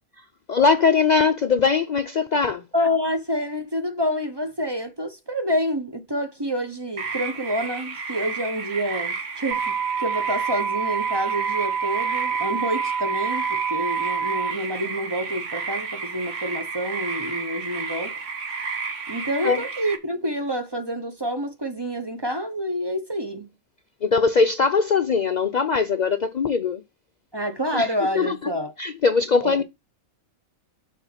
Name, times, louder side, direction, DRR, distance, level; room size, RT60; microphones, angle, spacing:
voice 1, 0.2-2.6 19.4-19.6 24.0-26.8 27.7-27.9 28.2-28.5 28.8-29.6, left 5 dB, 80° left, 0.3 m, -21 dB
voice 2, 2.7-18.2 19.1-23.5 27.3-28.7 29.4-29.6, equal, 20° right, 0.8 m, -28 dB
sound 1, 7.0-20.0, right 5 dB, 60° right, 1.5 m, -32 dB
sound 2, 9.5-14.5, right 6 dB, 75° right, 1.7 m, -27 dB
7.2 x 3.7 x 5.7 m
omnidirectional pair, 1.5 m